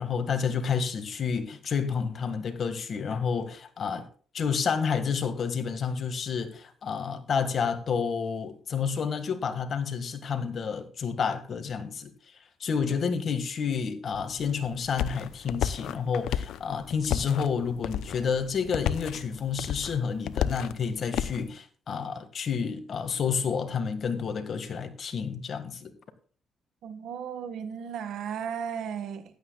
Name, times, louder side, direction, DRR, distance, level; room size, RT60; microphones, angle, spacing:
voice 1, 0.0-4.1 4.3-12.1 12.6-25.9, left 6 dB, 50° left, 1.8 m, -30 dB
sound 1, 14.1-21.4, left 10 dB, 80° left, 0.6 m, -33 dB
voice 2, 26.8-29.2, right 7 dB, 75° right, 1.6 m, -35 dB
15.5 x 11.5 x 2.4 m
cardioid pair, 90°, 0 cm